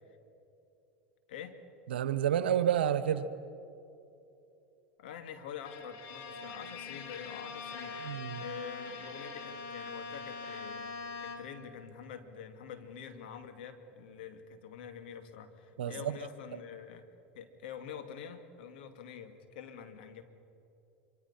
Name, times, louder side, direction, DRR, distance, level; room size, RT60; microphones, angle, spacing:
voice 1, 1.9-3.3 8.0-8.4 15.8-16.1, right 9 dB, 85° right, 1.1 m, -29 dB
voice 2, 5.0-17.1 17.3-20.2, left 7 dB, 75° left, 2.1 m, -46 dB
Bowed string instrument, 5.6-11.7, left 4 dB, 60° left, 2.6 m, -43 dB
26.0 x 24.0 x 5.7 m
hypercardioid pair, 95°, 5 cm